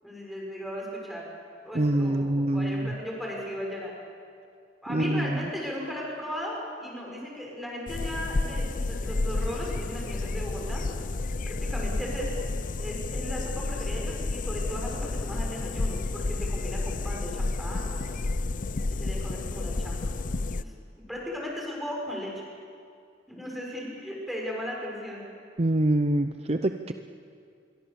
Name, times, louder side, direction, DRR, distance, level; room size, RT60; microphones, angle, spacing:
voice 1, 0.0-1.2 1.6-3.9 4.8-10.8 11.4-12.5 12.8-18.2 18.9-20.1 20.5-20.7 21.1-22.4 23.3-25.2, equal, ahead, -3 dB, 6.4 m, -36 dB
voice 2, 1.7-3.0 4.9-5.4 25.6-26.9, right 1 dB, 35° right, 8 dB, 0.7 m, -25 dB
sound 1, 7.9-20.6, left 2 dB, 45° left, 0.6 m, -31 dB
27.0 x 23.0 x 7.0 m, 2.3 s
head